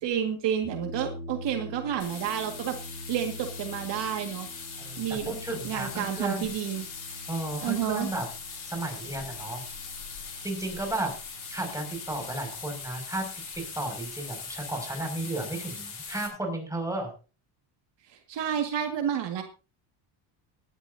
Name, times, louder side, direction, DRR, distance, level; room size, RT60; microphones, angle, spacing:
voice 1, 0.0-2.8 3.1-4.5 5.0-5.3 5.6-6.9 7.6-8.1 18.1-19.4, right 9 dB, 60° right, 4 dB, 1.9 m, -30 dB
sound 1, 0.6-13.7, left 1 dB, 40° right, 7.5 m, -46 dB
sound 2, 2.0-16.3, left 5 dB, 40° left, 7.0 m, -41 dB
voice 2, 4.8-6.5 7.3-8.3 8.7-9.6 10.4-11.1 11.5-13.3 13.8-17.1, right 2 dB, 5° right, 2 dB, 5.8 m, -33 dB
18.5 x 12.5 x 2.7 m, 0.33 s
cardioid pair, 135°, 48 cm